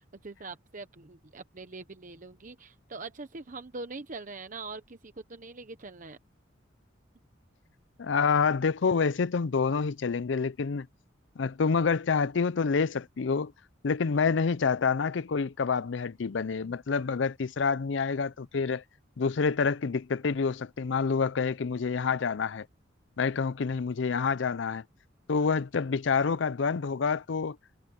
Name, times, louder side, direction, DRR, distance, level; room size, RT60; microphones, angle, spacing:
voice 1, 0.0-6.2, right 3 dB, 40° right, 0.9 m, -43 dB
voice 2, 8.0-10.9 11.4-13.5 13.8-18.8 19.2-22.7 23.2-24.8 25.3-27.6, left 5 dB, 65° left, 0.5 m, -27 dB
head